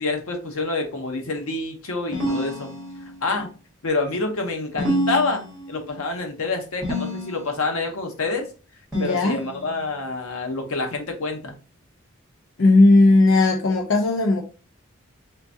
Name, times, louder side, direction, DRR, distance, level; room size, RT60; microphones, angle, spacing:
voice 1, 0.0-2.7 3.2-3.5 3.8-8.5 9.0-11.5, left 3 dB, 90° left, 0.9 m, -27 dB
sound 1, 2.1-3.3 4.8-5.9 6.8-7.7 8.9-9.9, equal, 5° right, 1.5 m, -28 dB
voice 2, 8.9-9.4 12.6-14.4, left 2 dB, 60° left, 0.5 m, -16 dB
3.7 x 3.5 x 2.7 m
head